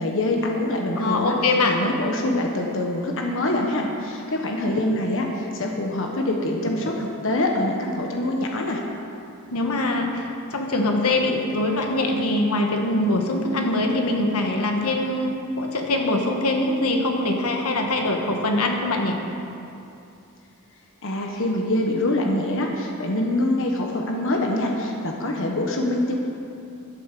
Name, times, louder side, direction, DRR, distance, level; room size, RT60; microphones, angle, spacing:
voice 1, 0.0-1.3 1.7-8.8 21.0-26.3, left 1 dB, 60° left, 1 dB, 1.2 m, -25 dB
voice 2, 1.0-1.8 9.5-19.2, left 2 dB, 85° left, 2 dB, 1.4 m, -23 dB
12.0 x 9.3 x 6.8 m, 2.6 s
head